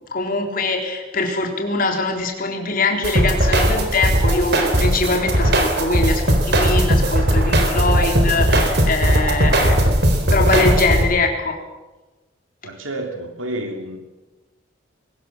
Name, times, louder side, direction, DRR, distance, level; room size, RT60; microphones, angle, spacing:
voice 1, 0.0-9.8 10.3-11.5, left 3 dB, 45° left, 3 dB, 3.8 m, -22 dB
sound 1, 3.0-11.0, right 1 dB, 55° right, 4.0 m, -17 dB
voice 2, 12.6-14.0, right 1 dB, 90° right, 4 dB, 3.0 m, -29 dB
22.0 x 20.0 x 7.4 m, 1.1 s
head